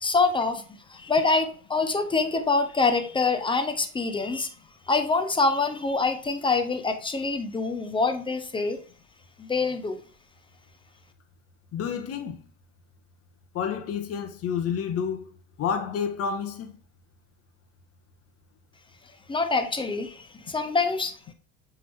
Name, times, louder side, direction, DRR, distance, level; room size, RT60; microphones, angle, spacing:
voice 1, 0.0-0.6 0.9-4.5 4.9-8.8 9.4-10.0 19.3-21.3, left 3 dB, 15° left, 0.9 m, -25 dB
voice 2, 11.7-12.4 13.5-15.3 15.6-16.7, left 7 dB, 45° left, 1.3 m, -29 dB
7.5 x 3.7 x 3.5 m
supercardioid pair, 105°, 34 cm